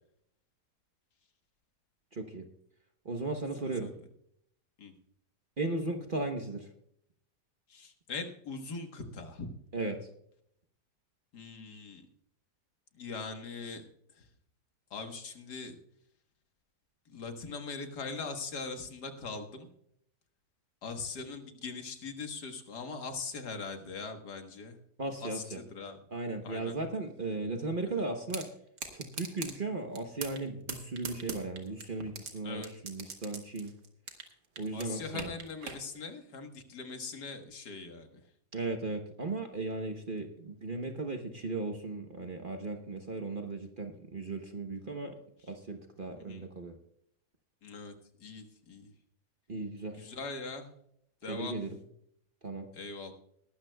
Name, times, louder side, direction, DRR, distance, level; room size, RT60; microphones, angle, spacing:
voice 1, 2.1-2.4 3.0-3.9 5.6-6.7 9.7-10.1 25.0-25.6 26.1-28.5 28.9-33.7 34.6-35.3 38.5-45.2 45.4-46.8 49.5-50.1 51.3-51.7 52.4-52.7, right 3 dB, 40° right, 5 dB, 0.9 m, -36 dB
voice 2, 3.6-3.9 4.8-4.9 7.7-9.5 11.3-12.1 12.9-13.8 14.1-14.3 14.9-15.8 17.1-19.7 20.8-24.8 25.2-26.0 26.4-26.7 28.0-28.1 32.4-32.7 34.7-38.2 45.4-45.5 46.2-46.4 47.6-48.9 50.0-50.7 51.2-51.6 52.7-53.1, left 4 dB, 75° left, 5 dB, 2.0 m, -41 dB
sound 1, 28.3-28.5 28.8-29.5 29.9-30.4 30.7-32.3 32.6-34.3 34.6-35.8, right 5 dB, 85° right, 2.1 m, -40 dB
20.5 x 12.5 x 2.3 m, 0.71 s
omnidirectional pair, 1.7 m